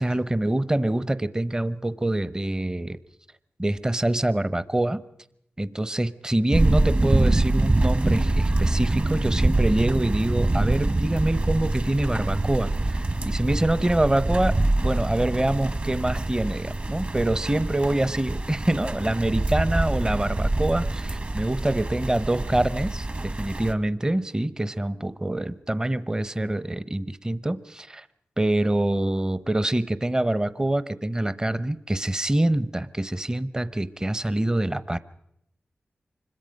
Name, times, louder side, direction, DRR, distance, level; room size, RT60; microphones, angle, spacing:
voice 1, 0.0-3.0 3.6-5.0 5.6-14.6 14.8-28.1 28.4-35.0, right 1 dB, 20° right, 15 dB, 0.8 m, -25 dB
sound 1, 6.5-23.7, right 2 dB, 40° right, 1.4 m, -25 dB
25.0 x 21.5 x 5.3 m, 0.77 s
cardioid pair, 65°, 4 cm